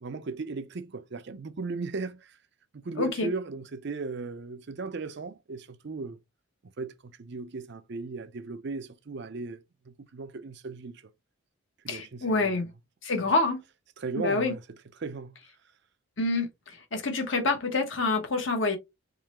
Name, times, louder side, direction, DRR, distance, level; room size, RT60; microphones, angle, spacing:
voice 1, 0.0-2.4 2.7-6.2 6.8-11.1 11.8-12.6 14.0-15.4, right 4 dB, 55° right, 0.5 m, -37 dB
voice 2, 3.0-3.3 11.9-12.7 13.0-13.6 14.2-14.5 16.2-18.8, left 3 dB, 65° left, 1.2 m, -27 dB
3.7 x 3.2 x 3.0 m
head